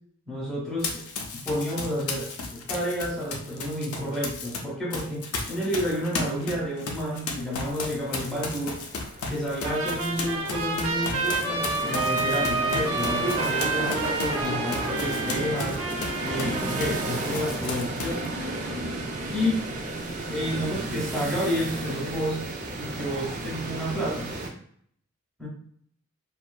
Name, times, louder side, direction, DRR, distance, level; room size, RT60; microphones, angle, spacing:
voice 1, 0.3-1.0 1.3-8.8 9.3-15.8 16.2-18.3 19.3-19.5 20.3-22.4 22.8-24.3 25.4-25.5, equal, ahead, -4 dB, 0.6 m, -30 dB
Run, 0.8-4.6 4.9-17.1 17.3-18.3, left 3 dB, 85° left, 0.5 m, -35 dB
sound 1, 6.4-24.5, right 2 dB, 35° right, 0.3 m, -33 dB
Trumpet, 9.6-17.3, right 3 dB, 80° right, 0.6 m, -30 dB
2.6 x 2.3 x 2.2 m, 0.64 s
head